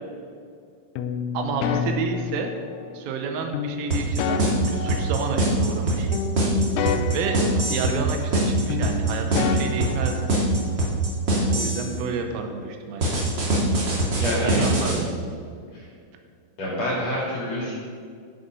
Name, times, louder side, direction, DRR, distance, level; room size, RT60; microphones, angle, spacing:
sound 1, 1.0-2.9 3.5-5.8 6.1-8.4 8.7-10.8, left 6 dB, 85° left, 3.4 m, -30 dB
voice 1, 1.3-2.5 2.9-6.1 7.1-10.3 11.3-13.2 14.4-15.1, right 5 dB, 80° right, 4 dB, 3.4 m, -30 dB
sound 2, 3.9-11.9 13.0-15.0, right 2 dB, 45° right, 1.4 m, -22 dB
voice 2, 13.9-14.7 15.7-15.9 16.6-17.7, left 1 dB, 40° left, -6 dB, 3.2 m, -28 dB
13.0 x 7.6 x 5.5 m, 2.2 s
omnidirectional pair, 6.0 m